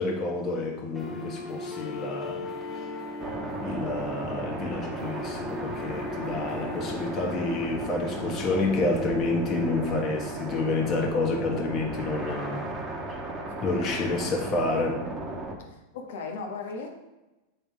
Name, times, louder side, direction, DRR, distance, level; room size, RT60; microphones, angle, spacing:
voice 1, 0.0-2.5 3.6-12.6 13.6-15.0, left 3 dB, 35° left, 2 dB, 1.3 m, -29 dB
sound 1, 0.9-8.9, left 2 dB, 15° left, 1.5 m, -38 dB
sound 2, 3.2-15.5, right 2 dB, 25° right, 1.1 m, -35 dB
voice 2, 15.6-16.9, left 4 dB, 65° left, 2 dB, 1.1 m, -38 dB
7.7 x 3.5 x 3.5 m, 1.0 s
hypercardioid pair, 90°, 0 cm